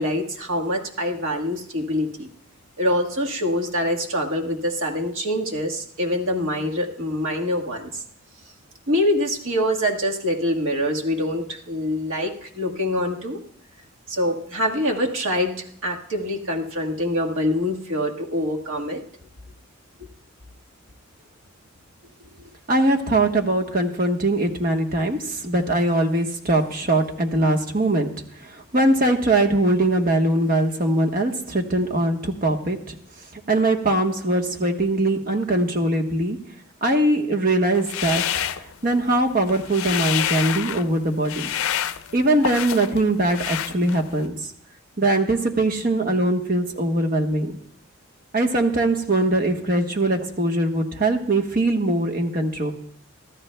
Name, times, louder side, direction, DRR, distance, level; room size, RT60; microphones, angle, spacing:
voice 1, 0.0-2.3 2.8-8.0 8.9-13.4 14.1-19.0, left 1 dB, 70° right, 0 dB, 1.6 m, -25 dB
voice 2, 22.7-28.1 28.4-33.0 33.3-36.4 36.8-38.2 38.8-41.5 42.1-44.3 45.0-47.5 48.3-52.7, right 1 dB, 45° right, 3 dB, 1.2 m, -21 dB
sound 1, 37.8-39.1 39.4-40.9 41.3-43.0 43.3-44.2, left 10 dB, 85° left, 0.5 m, -27 dB
24.0 x 14.0 x 2.3 m, 0.64 s
head